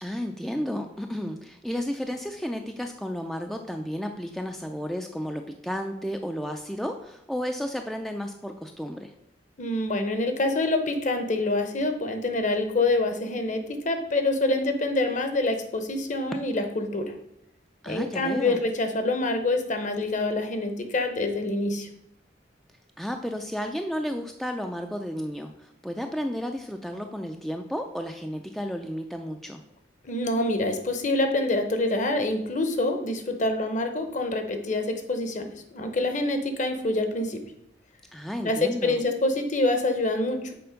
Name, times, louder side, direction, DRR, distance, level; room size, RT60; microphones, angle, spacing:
voice 1, 0.0-9.1 17.8-18.6 23.0-29.6 38.1-39.0, equal, ahead, 4 dB, 0.3 m, -32 dB
voice 2, 9.6-13.6 13.8-17.0 17.9-21.9 30.1-35.5 35.7-37.4 38.4-40.5, left 2 dB, 45° left, 7 dB, 0.9 m, -26 dB
6.9 x 4.2 x 5.1 m, 0.76 s
head